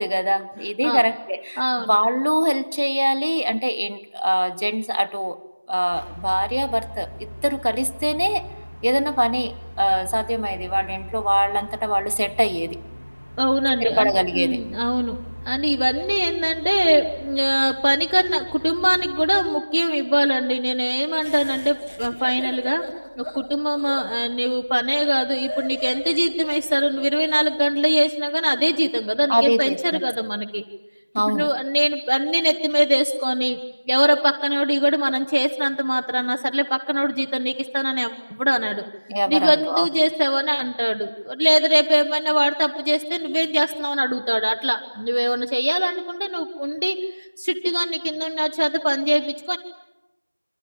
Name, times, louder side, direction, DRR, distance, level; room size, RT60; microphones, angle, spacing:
voice 1, 0.0-5.4 5.7-8.5 8.8-12.8 13.8-14.6 29.3-30.0 31.1-31.5 39.1-39.9, equal, 70° right, 10 dB, 1.4 m, -22 dB
voice 2, 1.6-1.9 13.4-15.2 15.5-30.6 31.2-33.6 33.9-38.8 39.3-49.6, equal, 35° right, 4 dB, 0.9 m, -22 dB
sound 1, 5.9-19.5, equal, 30° left, 2.0 m, -39 dB
Laughter, 21.2-27.6, equal, 10° left, 1.2 m, -35 dB
28.0 x 23.5 x 8.7 m, 0.95 s
figure-of-eight pair, 180°, 0 cm